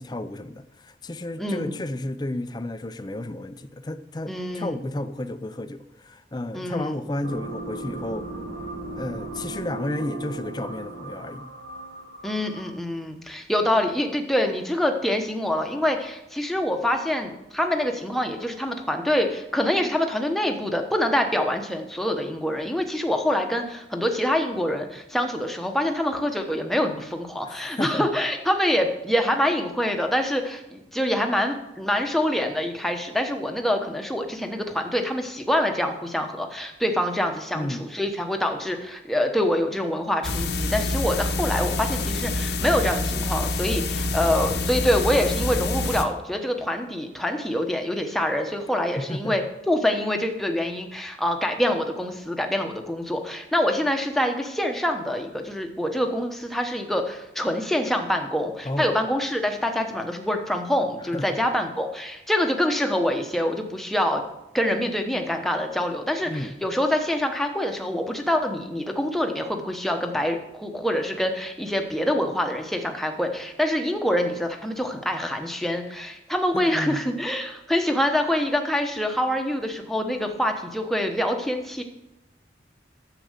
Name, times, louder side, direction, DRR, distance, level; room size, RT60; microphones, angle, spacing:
voice 1, 0.0-8.3 9.0-11.5 27.5-28.1 37.5-37.9 49.0-49.4 58.6-58.9 61.1-61.3 66.3-66.6 76.5-77.0, left 1 dB, 20° left, 0.5 m, -32 dB
voice 2, 1.4-1.7 4.3-4.8 6.5-6.9 12.2-64.2 64.5-81.8, left 1 dB, ahead, 0.9 m, -25 dB
sound 1, 7.2-12.9, right 2 dB, 65° right, 2.7 m, -37 dB
sound 2, 40.2-46.0, left 2 dB, 60° left, 0.9 m, -27 dB
10.0 x 7.5 x 6.6 m
head